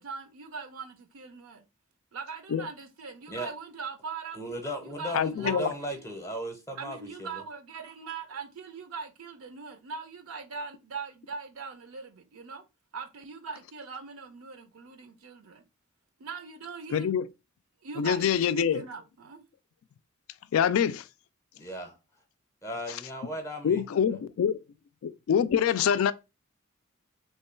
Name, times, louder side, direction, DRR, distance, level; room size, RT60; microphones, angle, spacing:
voice 1, 0.0-1.6 2.1-4.4 4.8-6.0 6.8-12.6 12.9-15.6 16.2-17.1 17.8-19.4, right 5 dB, 75° right, 0.5 m, -41 dB
voice 2, 4.3-7.4 21.6-22.0 22.6-23.8 24.1-24.2, equal, 15° left, 0.6 m, -37 dB
voice 3, 5.1-5.7 16.9-17.3 18.0-18.8 20.5-21.0 22.9-23.0 23.6-24.6 25.0-26.1, left 8 dB, 70° left, 0.3 m, -25 dB
3.1 x 2.2 x 4.2 m
head